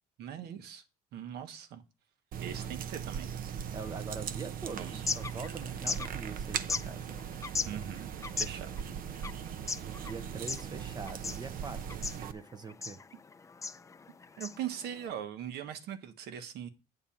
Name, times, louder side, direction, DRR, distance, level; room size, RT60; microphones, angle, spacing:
voice 1, 0.2-0.8 1.1-1.8 2.4-3.3 4.7-5.0 7.6-8.1 8.4-8.8 14.4-16.7, right 9 dB, 75° right, 1.3 m, -40 dB
sound 1, 2.3-12.3, right 8 dB, 55° right, 0.7 m, -39 dB
voice 2, 3.7-7.1 10.0-13.0, right 4 dB, 25° right, 0.7 m, -43 dB
sound 2, 4.8-15.1, left 4 dB, 20° left, 0.5 m, -40 dB
8.9 x 4.0 x 7.2 m
cardioid pair, 110°, 17 cm